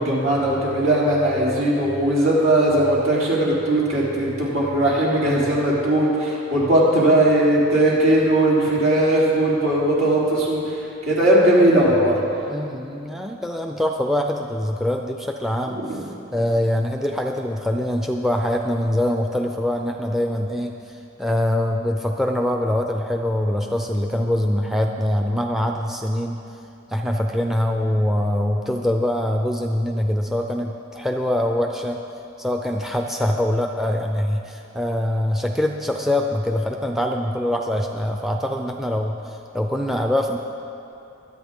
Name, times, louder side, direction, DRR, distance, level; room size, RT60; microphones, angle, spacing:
voice 1, 0.0-10.6 11.1-12.2 15.9-16.0, right 1 dB, 85° right, -6 dB, 3.6 m, -18 dB
voice 2, 12.5-26.4 26.9-32.0 32.4-40.4, left 1 dB, ahead, 3 dB, 0.4 m, -24 dB
24.0 x 8.4 x 3.7 m, 2.7 s
head